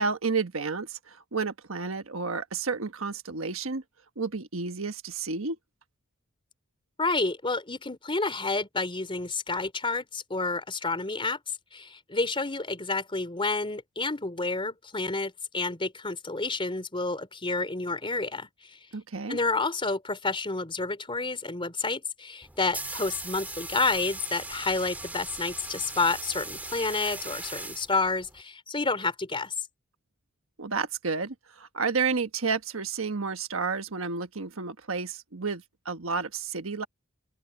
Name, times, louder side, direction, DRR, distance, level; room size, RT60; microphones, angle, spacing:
voice 1, 0.0-3.8 4.2-5.6 18.9-19.4 30.6-36.9, right 4 dB, 70° right, 1.3 m, -31 dB
voice 2, 7.0-11.4 11.7-18.8 19.3-29.5, left 3 dB, 25° left, 3.6 m, -29 dB
sound 1, 22.4-28.4, right 2 dB, 10° right, 1.8 m, -39 dB
open air
head